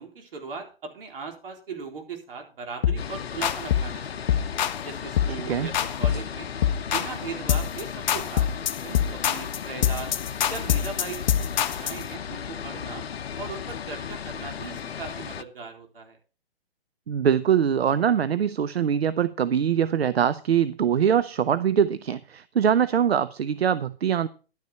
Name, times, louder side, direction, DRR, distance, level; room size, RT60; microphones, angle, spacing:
voice 1, 0.0-4.0 4.3-4.4 4.8-6.5 6.9-10.1 10.5-13.0 13.4-16.2, right 5 dB, 65° right, 3.9 m, -38 dB
sound 1, 2.8-3.1 3.4-3.9 4.3-4.8 5.2-5.4 5.7-6.3 6.6-7.2 7.5-7.8 8.1-12.0, left 10 dB, 50° left, 0.9 m, -24 dB
sound 2, 3.0-15.4, left 7 dB, 85° left, 0.8 m, -36 dB
voice 2, 5.3-5.7 17.1-24.3, right 8 dB, 85° right, 0.7 m, -23 dB
11.5 x 9.8 x 4.3 m
hypercardioid pair, 140°, 30 cm